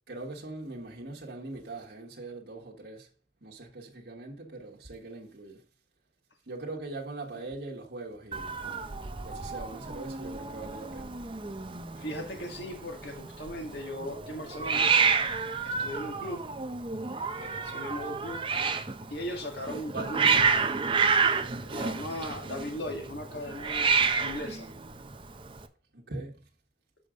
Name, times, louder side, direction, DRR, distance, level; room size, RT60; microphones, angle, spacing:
voice 1, 0.1-3.1 3.4-5.6 6.5-8.7 9.2-11.2 19.7-20.3 25.9-26.4, right 2 dB, 65° right, 1.4 m, -41 dB
Hiss, 8.3-25.7, right 5 dB, 25° right, 0.6 m, -30 dB
voice 2, 12.0-14.9 15.6-16.4 17.3-18.4 19.1-20.8 21.6-24.7, left 1 dB, 70° left, 1.9 m, -38 dB
7.1 x 5.0 x 5.0 m
head